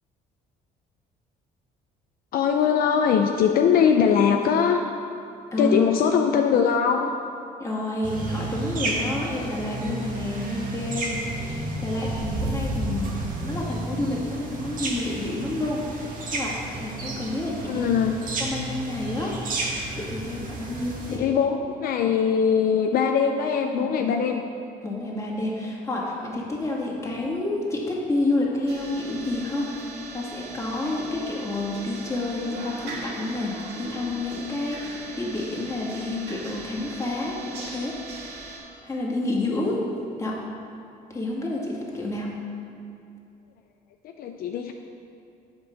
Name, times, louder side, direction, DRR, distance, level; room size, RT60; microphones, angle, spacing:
voice 1, 2.3-4.8 5.6-7.1 17.7-18.1 21.1-24.4 44.2-44.7, left 7 dB, 60° left, 4 dB, 0.5 m, -21 dB
voice 2, 5.5-5.9 7.6-13.1 13.4-16.0 16.3-17.9 18.4-19.4 20.0-21.3 23.6-24.1 24.8-38.0 38.8-39.8 40.2-40.4 41.1-42.3, left 2 dB, 15° left, -4 dB, 1.8 m, -29 dB
sound 1, 8.0-21.2, right 2 dB, 55° right, 1.5 m, -32 dB
sound 2, 28.7-38.6, right 3 dB, 75° right, 1.8 m, -39 dB
7.8 x 5.3 x 6.4 m, 2.6 s
cardioid pair, 110°, 17 cm